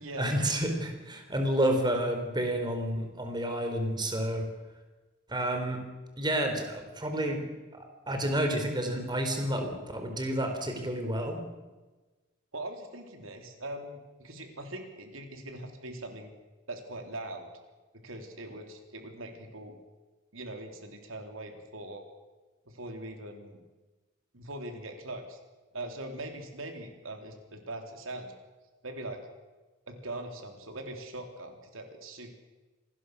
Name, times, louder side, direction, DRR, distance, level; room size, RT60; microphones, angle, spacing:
voice 1, 0.0-4.4 5.3-5.8 6.2-7.4 7.7-11.4, right 1 dB, 20° right, 5 dB, 3.7 m, -30 dB
voice 2, 12.5-16.3 16.7-17.5 18.0-19.8 20.3-22.0 22.7-23.6 24.3-25.4 25.7-28.3 28.8-29.2 29.9-32.3, right 1 dB, 90° right, 4 dB, 3.7 m, -41 dB
27.0 x 19.5 x 6.4 m, 1.2 s
head